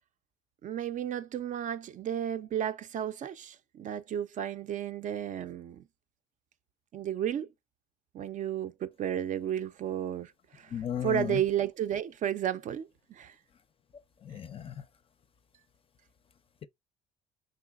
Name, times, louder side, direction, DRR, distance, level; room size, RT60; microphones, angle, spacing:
voice 1, 0.6-5.8 6.9-7.5 8.1-10.7 11.0-13.4, right 10 dB, 50° right, 0.4 m, -33 dB
voice 2, 10.7-11.4 14.2-14.7, left 9 dB, 35° left, 0.4 m, -34 dB
4.5 x 3.9 x 2.2 m
cardioid pair, 110°, 17 cm